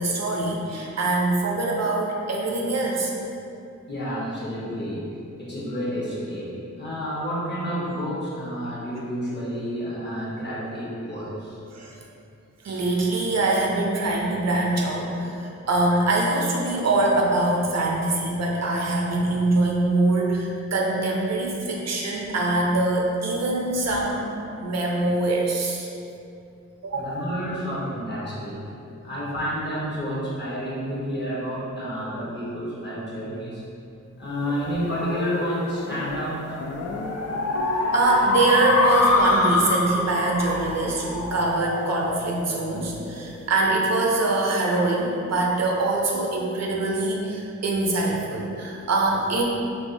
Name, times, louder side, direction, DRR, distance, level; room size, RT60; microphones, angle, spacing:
voice 1, 0.0-3.1 11.7-11.9 12.6-24.3 24.6-25.9 26.8-27.2 37.7-49.6, right 2 dB, 60° right, -1 dB, 0.6 m, -24 dB
voice 2, 3.9-5.1 5.4-11.6 26.9-28.7 29.0-33.6 34.2-36.4, equal, 35° left, -7 dB, 1.1 m, -30 dB
sound 1, 34.5-43.3, left 3 dB, 55° left, 0.4 m, -26 dB
3.2 x 2.9 x 2.6 m, 2.6 s
cardioid pair, 65°, 31 cm